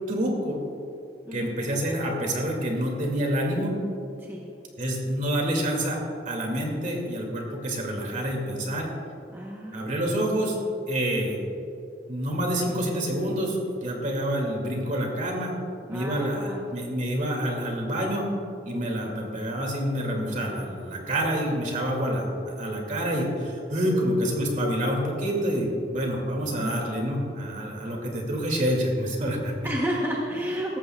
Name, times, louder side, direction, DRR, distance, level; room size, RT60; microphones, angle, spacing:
voice 1, 0.1-0.6 1.3-3.8 4.8-6.0 6.3-8.9 9.7-10.6 10.9-11.4 12.1-15.5 15.9-18.3 18.6-29.5, equal, 45° right, 0 dB, 2.3 m, -27 dB
voice 2, 9.3-9.8 15.9-16.7 23.9-24.1 26.5-26.8 29.6-30.8, equal, 15° right, -3 dB, 0.9 m, -31 dB
17.5 x 14.0 x 2.3 m, 2.7 s
head